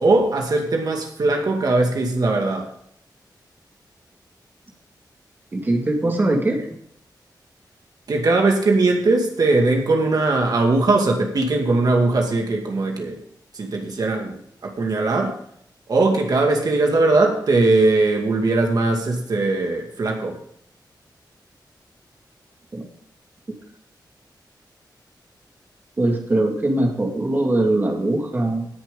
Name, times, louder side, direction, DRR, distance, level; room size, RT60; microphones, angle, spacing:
voice 1, 0.0-2.7 8.1-13.2 13.5-15.4 15.9-20.4, right 2 dB, 60° right, 2 dB, 2.1 m, -20 dB
voice 2, 5.5-6.7 22.7-22.8 26.0-28.7, right 1 dB, 25° right, 1 dB, 2.1 m, -21 dB
18.0 x 7.2 x 3.8 m, 0.69 s
wide cardioid pair, 180°, 8 cm